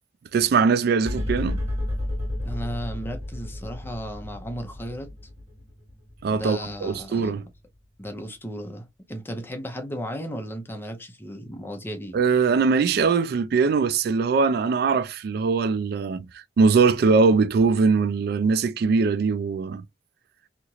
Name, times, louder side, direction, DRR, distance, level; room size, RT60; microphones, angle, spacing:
voice 1, 0.3-1.6 6.2-7.5 12.1-19.8, right 4 dB, 60° right, 0.3 m, -21 dB
sound 1, 1.0-7.7, left 1 dB, 35° right, 1.5 m, -32 dB
voice 2, 2.4-5.1 6.3-7.3 8.0-12.2, equal, 10° left, 0.6 m, -35 dB
2.9 x 2.4 x 2.8 m
head